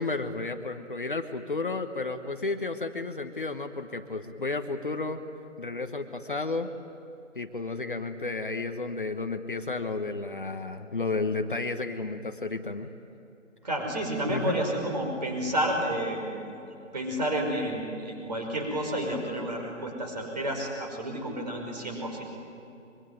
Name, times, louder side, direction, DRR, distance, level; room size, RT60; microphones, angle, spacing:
voice 1, 0.0-5.2 5.6-6.7 7.3-12.9 14.3-14.6, left 3 dB, 45° left, 7 dB, 1.2 m, -32 dB
voice 2, 13.6-16.3 16.9-22.2, right 1 dB, 35° right, 2 dB, 5.4 m, -30 dB
24.5 x 24.0 x 9.5 m, 2.8 s
figure-of-eight pair, 170°, 37 cm